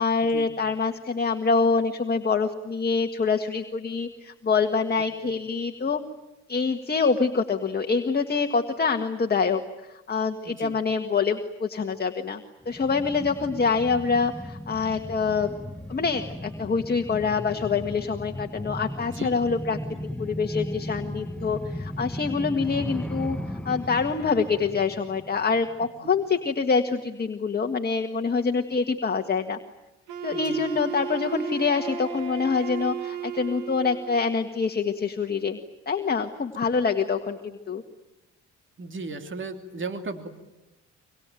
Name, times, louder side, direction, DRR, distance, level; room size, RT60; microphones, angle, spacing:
voice 1, 0.0-6.0 6.5-15.5 15.9-19.8 20.2-29.6 30.2-35.6 35.9-37.8, left 5 dB, 30° left, 5 dB, 1.8 m, -25 dB
sound 1, 12.6-25.9 26.2-26.3, left 1 dB, 5° left, 1.2 m, -36 dB
voice 2, 19.0-19.3 19.9-20.0 23.0-23.1 30.3-30.6 38.8-40.3, right 3 dB, 40° right, 7 dB, 2.9 m, -36 dB
Wind instrument woodwind instrument, 30.1-34.2, right 8 dB, 80° right, 2.7 m, -34 dB
25.0 x 24.5 x 9.2 m, 1.0 s
cardioid pair, 90°, 30 cm